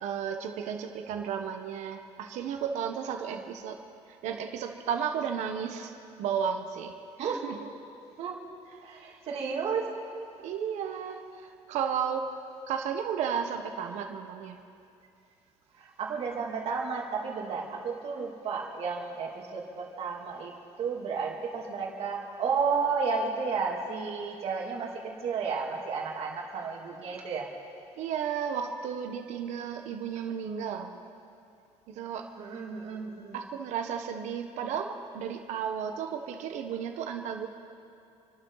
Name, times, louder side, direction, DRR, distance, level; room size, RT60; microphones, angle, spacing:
voice 1, 0.0-3.8 4.1-5.9 6.2-7.6 10.4-12.4 12.7-14.6 28.0-30.9 31.9-32.3 33.3-37.5, right 7 dB, 80° right, 4 dB, 1.3 m, -33 dB
voice 2, 8.8-9.9 15.7-27.5 32.4-33.4, right 5 dB, 55° right, -1 dB, 2.8 m, -32 dB
28.0 x 12.0 x 4.1 m, 2.6 s
cardioid pair, 145°, 12 cm